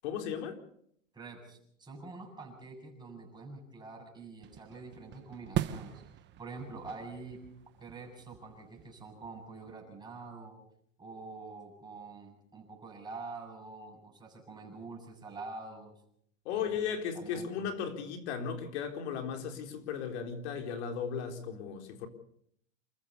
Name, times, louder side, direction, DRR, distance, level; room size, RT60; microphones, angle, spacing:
voice 1, 0.0-0.6 16.4-22.1, left 7 dB, 60° left, 5 dB, 4.2 m, -36 dB
voice 2, 1.1-7.4 7.8-10.6 11.0-15.9 16.5-16.8 17.1-17.7, right 3 dB, 10° right, 0 dB, 7.7 m, -46 dB
sound 1, 4.4-9.7, right 12 dB, 30° right, 1.1 m, -41 dB
28.5 x 14.5 x 6.9 m, 0.68 s
hypercardioid pair, 130°, 38 cm